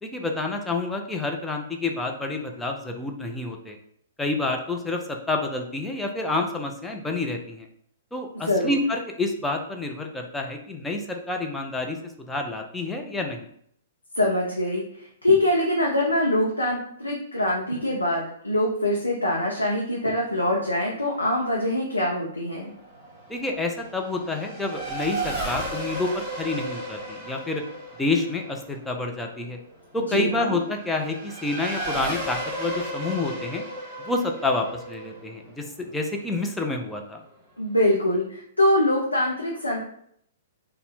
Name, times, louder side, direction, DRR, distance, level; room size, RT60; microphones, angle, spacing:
voice 1, 0.0-3.8 4.2-7.7 8.1-13.5 23.3-27.6 28.0-29.6 29.9-33.6 34.0-37.2, left 2 dB, 5° left, 2 dB, 0.6 m, -28 dB
voice 2, 8.4-8.8 14.1-22.7 30.1-30.6 37.6-39.8, left 1 dB, 85° left, -4 dB, 0.7 m, -24 dB
Race car auto racing / Accelerating revving vroom, 22.5-36.6, right 1 dB, 20° right, 1.4 m, -35 dB
4.0 x 2.2 x 4.2 m, 0.67 s
figure-of-eight pair, 115°, 0 cm